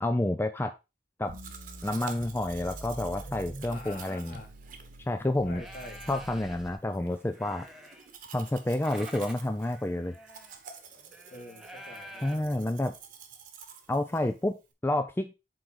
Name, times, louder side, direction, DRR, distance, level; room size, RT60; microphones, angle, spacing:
voice 1, 0.0-0.7 1.2-1.3 1.8-4.4 5.1-5.6 6.1-7.6 8.3-10.2 12.2-12.9 13.9-14.6 14.8-15.3, left 1 dB, 15° left, 8 dB, 0.5 m, -29 dB
Domestic sounds home sounds, 1.3-14.7, right 6 dB, 50° right, 1.2 m, -50 dB
sound 1, 1.3-4.0 4.3-6.7, right 1 dB, 80° right, 2.0 m, -45 dB
voice 2, 3.7-4.5 5.4-6.0 11.3-12.6, left 1 dB, 50° left, 0 dB, 2.5 m, -46 dB
sound 2, 5.0-5.2 5.6-6.8 7.1-8.3 8.6-12.4, equal, ahead, 0.9 m, -48 dB
7.7 x 3.9 x 4.6 m, 0.26 s
head